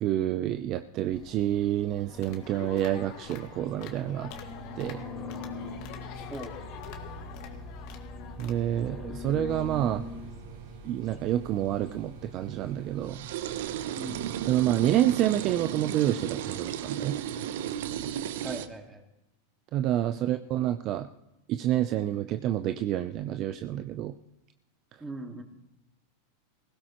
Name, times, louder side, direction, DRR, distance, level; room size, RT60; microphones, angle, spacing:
voice 1, 0.0-4.3 4.8-5.0 8.4-10.0 10.8-13.3 14.5-17.2 19.7-21.1 21.5-24.1, right 12 dB, 40° right, 9 dB, 0.6 m, -28 dB
sound 1, 1.1-14.9, left 3 dB, 35° left, 3.6 m, -43 dB
sound 2, 2.1-8.9, left 8 dB, 55° left, 1.9 m, -46 dB
sound 3, 9.5-18.7, right 10 dB, 70° right, 0.8 m, -36 dB
voice 2, 14.0-14.3 18.4-19.0 25.0-25.4, right 2 dB, 10° right, 4 dB, 2.0 m, -39 dB
19.0 x 16.0 x 3.1 m, 0.89 s
supercardioid pair, 130°, 0 cm